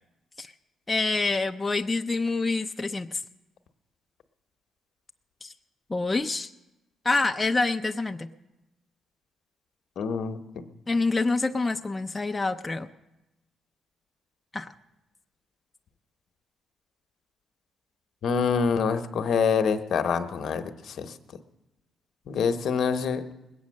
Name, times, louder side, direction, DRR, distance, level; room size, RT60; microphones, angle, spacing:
voice 1, 0.9-3.2 5.4-5.5 5.9-6.5 7.0-8.3 10.9-12.9 14.5-14.7, left 3 dB, 20° left, 5 dB, 0.5 m, -26 dB
voice 2, 10.0-10.4 18.2-21.2 22.3-23.2, left 6 dB, 65° left, 8 dB, 0.9 m, -26 dB
20.0 x 8.5 x 6.3 m, 0.98 s
cardioid pair, 90°, 0 cm